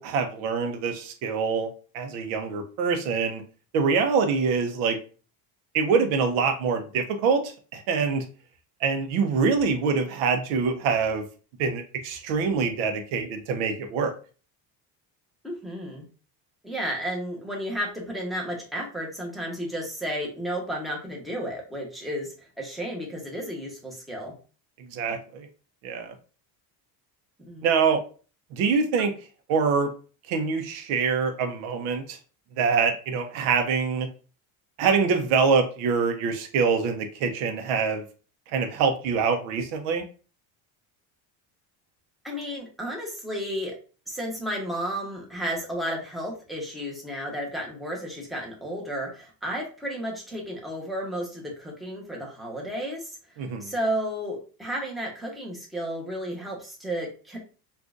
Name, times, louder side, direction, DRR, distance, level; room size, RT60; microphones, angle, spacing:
voice 1, 0.0-3.4 3.7-5.0 5.7-8.2 8.8-11.2 11.6-14.1 24.9-25.5 25.8-26.1 27.6-28.0 28.5-29.1 29.5-29.9 30.3-32.2 32.6-34.1 34.8-38.0 38.5-40.0 53.4-53.7, right 5 dB, 80° right, 6 dB, 0.7 m, -25 dB
voice 2, 15.4-16.0 16.6-24.3 27.4-27.6 42.2-43.7 44.1-57.4, equal, ahead, -2 dB, 0.9 m, -33 dB
3.7 x 2.5 x 2.4 m, 0.37 s
cardioid pair, 115°, 47 cm